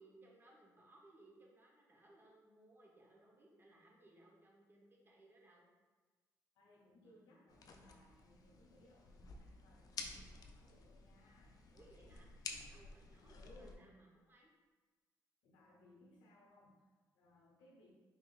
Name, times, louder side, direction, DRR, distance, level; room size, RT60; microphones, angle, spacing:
voice 1, 0.0-5.7 7.0-8.1 11.7-12.3 12.7-14.5, right 2 dB, 30° right, -2 dB, 0.9 m, -65 dB
voice 2, 6.5-11.6 13.2-13.9 15.4-17.9, left 1 dB, 90° left, -2 dB, 0.8 m, -65 dB
sound 1, 7.5-13.7, left 4 dB, 55° left, 0.4 m, -52 dB
3.5 x 3.4 x 2.4 m, 1.3 s
cardioid pair, 75°, 8 cm